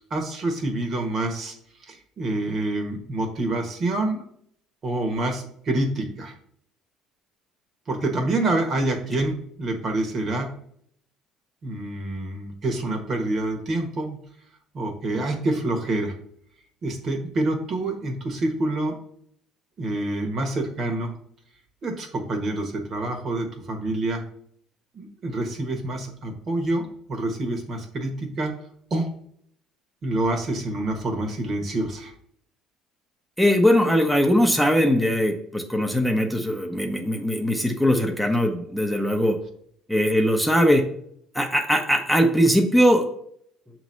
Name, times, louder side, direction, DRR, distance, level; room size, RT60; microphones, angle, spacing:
voice 1, 0.1-1.5 1.9-4.2 4.8-6.3 7.9-10.5 11.6-14.2 14.7-16.1 16.8-19.0 19.8-21.1 21.8-24.2 24.9-28.5 28.9-29.1 30.0-32.1, right 2 dB, 45° right, 4 dB, 1.3 m, -27 dB
voice 2, 33.4-39.4 39.9-40.8 41.3-43.1, equal, ahead, 2 dB, 0.7 m, -20 dB
6.6 x 3.1 x 5.3 m, 0.66 s
cardioid pair, 105°, 0 cm